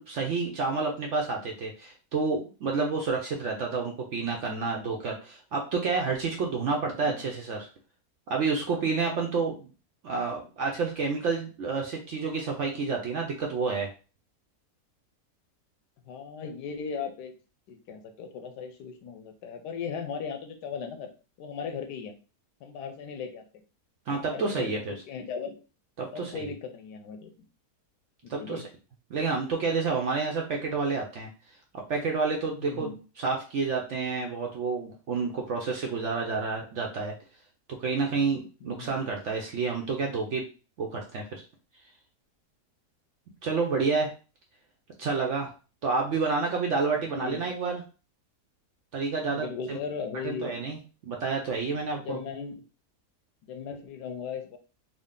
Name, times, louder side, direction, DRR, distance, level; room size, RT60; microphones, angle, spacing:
voice 1, 0.0-7.7 8.3-9.7 10.0-13.9 24.1-24.9 26.0-26.5 28.3-28.6 29.1-31.3 31.9-32.9 33.2-37.1 37.8-40.4 40.8-41.4 43.4-44.1 45.0-45.5 45.8-47.8 48.9-49.8 50.2-50.8 51.0-52.2, right 4 dB, 65° right, 1 dB, 0.7 m, -29 dB
voice 2, 6.9-7.3 16.1-17.3 17.7-21.1 21.4-22.1 22.6-23.4 24.1-25.6 26.1-27.3 28.2-28.7 32.6-33.0 38.6-38.9 46.9-47.4 49.3-50.5 52.0-52.6 53.4-54.6, left 6 dB, 90° left, 7 dB, 1.2 m, -37 dB
3.7 x 2.1 x 3.6 m, 0.35 s
omnidirectional pair, 1.7 m